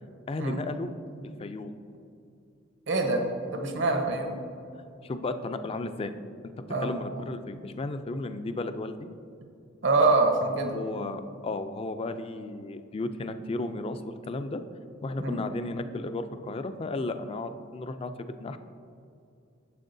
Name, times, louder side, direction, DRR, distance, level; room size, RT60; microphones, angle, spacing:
voice 1, 0.3-0.9 1.4-1.7 5.0-6.1 6.8-8.9 10.7-14.6 15.0-18.1 18.4-18.6, left 2 dB, 30° left, 10 dB, 0.3 m, -34 dB
voice 2, 2.9-3.2 3.5-4.4 6.7-6.9 9.8-10.8 15.2-15.4, right 3 dB, 65° right, 3 dB, 1.0 m, -25 dB
9.0 x 7.0 x 2.6 m, 2.5 s
head